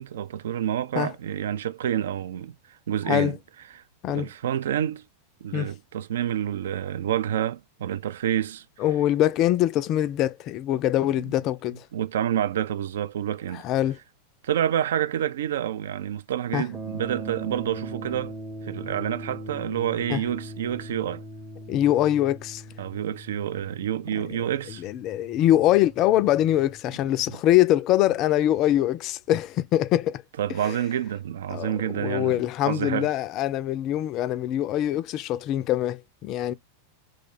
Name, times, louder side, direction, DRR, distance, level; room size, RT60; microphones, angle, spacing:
voice 1, 0.0-3.4 3.7-3.8 4.1-5.0 5.4-8.7 11.1-11.3 11.9-13.6 14.4-18.3 18.6-21.2 22.8-24.8 27.3-27.4 30.4-33.1, right 10 dB, 60° right, 0.3 m, -28 dB
voice 2, 8.8-11.8 13.6-14.0 16.5-16.7 20.1-20.2 21.7-22.6 24.8-30.2 30.7-30.8 31.5-36.5, left 13 dB, 35° left, 0.3 m, -23 dB
sound 1, 16.7-26.8, right 2 dB, 20° right, 0.7 m, -40 dB
3.1 x 2.2 x 3.8 m
figure-of-eight pair, 90°, 0 cm